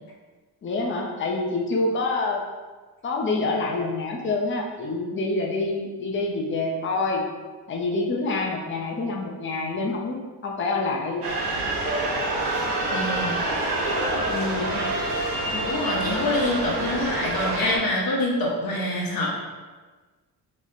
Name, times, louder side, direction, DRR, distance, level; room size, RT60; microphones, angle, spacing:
voice 1, 0.6-2.5 3.0-7.2 7.7-11.3 14.3-14.9, left 3 dB, 30° left, 0 dB, 0.5 m, -27 dB
sound 1, 11.2-17.8, right 2 dB, 80° right, 0.9 m, -27 dB
voice 2, 12.9-13.4 15.5-19.3, left 1 dB, 60° left, -3 dB, 0.9 m, -26 dB
3.1 x 2.1 x 3.9 m, 1.3 s
cardioid pair, 95°, 40 cm